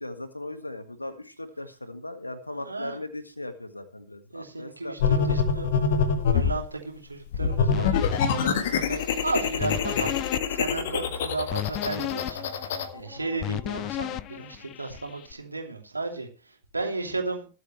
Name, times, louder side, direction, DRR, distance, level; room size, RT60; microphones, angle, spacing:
voice 1, 0.0-5.4 14.3-14.5, left 2 dB, 85° left, 10 dB, 1.7 m, -38 dB
voice 2, 2.5-3.0 4.3-5.7 6.3-17.5, right 3 dB, 80° right, 2 dB, 2.8 m, -34 dB
sound 1, 5.0-6.6 7.3-12.9, left 6 dB, 60° left, 1.6 m, -25 dB
sound 2, 7.7-15.3, left 15 dB, 35° left, 0.5 m, -35 dB
21.5 x 8.0 x 3.2 m, 0.35 s
figure-of-eight pair, 90°, 0 cm